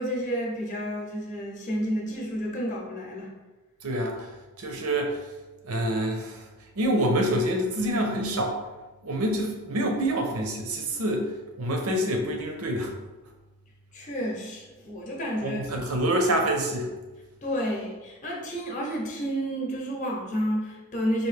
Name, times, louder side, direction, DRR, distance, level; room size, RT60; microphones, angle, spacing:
voice 1, 0.0-3.3 13.9-15.6 17.4-21.3, equal, 35° left, -2 dB, 0.7 m, -30 dB
voice 2, 3.8-4.3 4.6-5.2 5.6-6.4 6.8-8.5 9.0-11.3 11.6-12.9 15.4-16.9, right 1 dB, 75° right, 3 dB, 0.7 m, -26 dB
4.4 x 2.7 x 3.2 m, 1.1 s
head